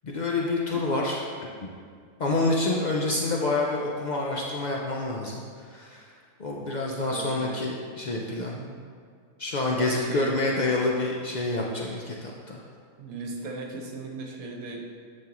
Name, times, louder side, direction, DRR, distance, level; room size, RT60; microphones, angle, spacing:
voice 1, 0.0-1.2 1.6-1.7 2.2-6.1 6.4-8.6 9.4-12.6, left 2 dB, 80° left, -1 dB, 0.4 m, -27 dB
voice 2, 7.1-7.7 8.4-8.7 9.7-10.3 13.0-14.9, right 3 dB, 70° right, 1 dB, 1.4 m, -37 dB
10.5 x 5.3 x 3.0 m, 2.1 s
omnidirectional pair, 1.6 m